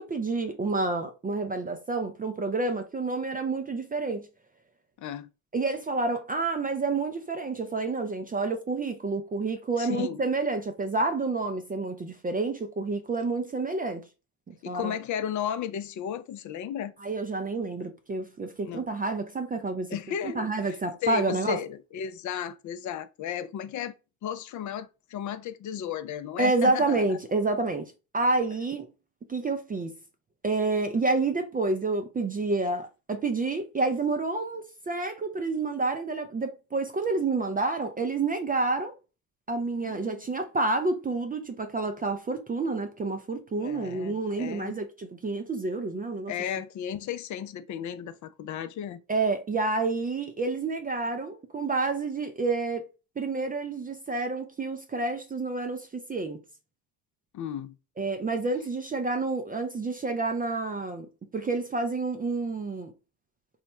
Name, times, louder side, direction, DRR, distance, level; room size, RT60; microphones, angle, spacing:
voice 1, 0.0-4.3 5.5-14.0 14.5-15.0 17.0-20.0 20.2-21.6 26.4-28.9 29.3-29.9 30.4-38.9 39.5-46.3 49.1-52.9 53.2-56.4 58.0-62.9, right 3 dB, 20° right, 0.4 m, -29 dB
voice 2, 5.0-5.3 9.8-10.2 14.6-16.9 18.6-18.9 19.9-20.8 21.0-24.0 24.2-27.2 39.8-40.1 43.6-44.8 46.3-49.0 57.3-57.8, left 9 dB, 40° left, 0.5 m, -34 dB
3.0 x 2.1 x 3.3 m
hypercardioid pair, 65°, 47 cm